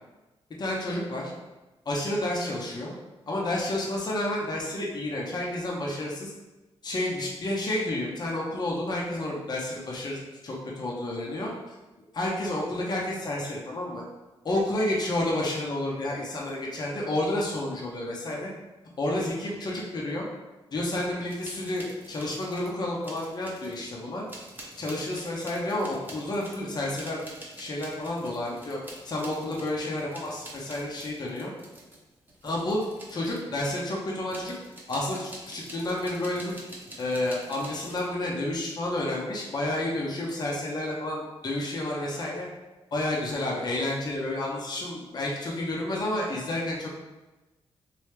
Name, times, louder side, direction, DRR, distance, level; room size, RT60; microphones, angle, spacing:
voice 1, 0.6-1.3 1.9-2.9 3.3-6.3 6.8-11.7 12.1-14.0 14.4-18.5 19.0-20.3 20.7-24.2 24.8-27.2 27.6-28.8 29.0-31.5 32.4-32.8 33.1-34.5 34.9-36.6 37.0-42.5 42.9-46.9, left 1 dB, 40° left, -3 dB, 0.6 m, -30 dB
sound 1, 21.3-22.7 23.0-23.9 24.3-33.8 34.3-38.1, right 1 dB, 20° right, 0.8 m, -46 dB
3.1 x 2.7 x 3.2 m, 1.1 s
cardioid pair, 95°, 10 cm